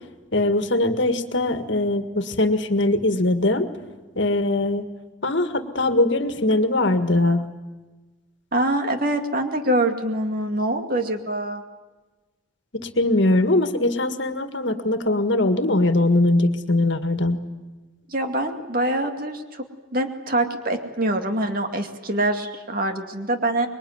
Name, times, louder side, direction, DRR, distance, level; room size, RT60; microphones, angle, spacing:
voice 1, 0.3-3.7 4.2-4.8 5.2-7.4 13.0-17.4, left 2 dB, 60° left, 8 dB, 1.8 m, -21 dB
voice 2, 8.5-11.6 18.1-19.6 19.9-23.7, right 1 dB, 45° right, 5 dB, 2.3 m, -24 dB
25.5 x 22.5 x 9.5 m, 1.2 s
head